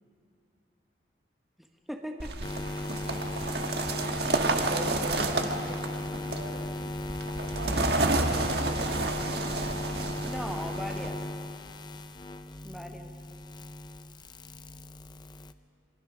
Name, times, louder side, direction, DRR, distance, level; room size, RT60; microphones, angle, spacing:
voice 1, 1.9-2.9 10.2-11.2 12.6-13.1, equal, ahead, 3 dB, 1.1 m, -39 dB
sound 1, 2.2-11.1, right 2 dB, 65° right, 1.6 m, -30 dB
sound 2, 2.4-15.5, left 1 dB, 25° left, 0.6 m, -37 dB
voice 2, 4.1-6.7 7.4-9.3, right 1 dB, 80° right, 0 dB, 5.2 m, -42 dB
26.5 x 23.0 x 6.2 m, 2.4 s
head